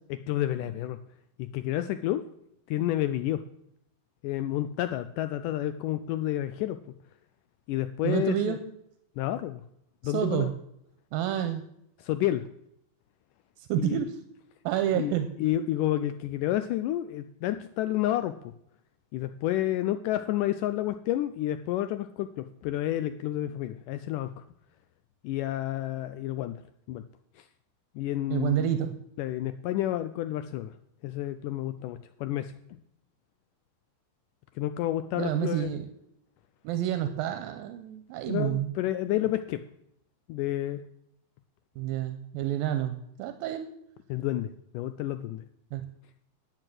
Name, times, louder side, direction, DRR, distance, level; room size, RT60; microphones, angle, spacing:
voice 1, 0.1-1.0 1.4-2.3 2.7-3.4 4.2-6.8 7.7-8.6 9.2-9.6 10.0-10.5 12.0-12.4 13.8-14.0 14.9-15.1 15.4-18.4 19.1-24.4 25.2-26.6 26.9-27.0 27.4-27.5 28.0-28.7 29.2-30.7 31.0-32.8 34.6-35.7 38.3-39.6 40.3-40.8 44.1-45.4, left 13 dB, 80° left, 11 dB, 1.9 m, -30 dB
voice 2, 8.0-8.6 10.0-10.5 11.1-11.6 13.7-14.2 14.7-15.3 28.3-28.9 35.1-35.9 36.6-38.7 41.8-43.7 45.7-45.9, right 11 dB, 85° right, 9 dB, 2.5 m, -29 dB
9.7 x 9.1 x 7.7 m, 0.77 s
omnidirectional pair, 4.2 m